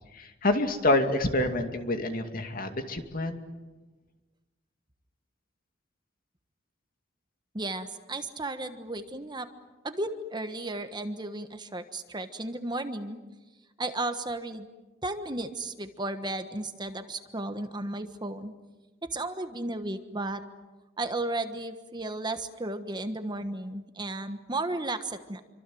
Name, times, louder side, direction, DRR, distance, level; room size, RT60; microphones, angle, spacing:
voice 1, 0.2-3.4, left 2 dB, 45° left, 6 dB, 2.4 m, -27 dB
voice 2, 7.5-9.5 9.8-13.2 13.8-14.7 15.0-18.5 19.1-20.4 21.0-25.4, right 2 dB, 25° right, 8 dB, 1.3 m, -34 dB
27.5 x 25.0 x 7.8 m, 1.2 s
head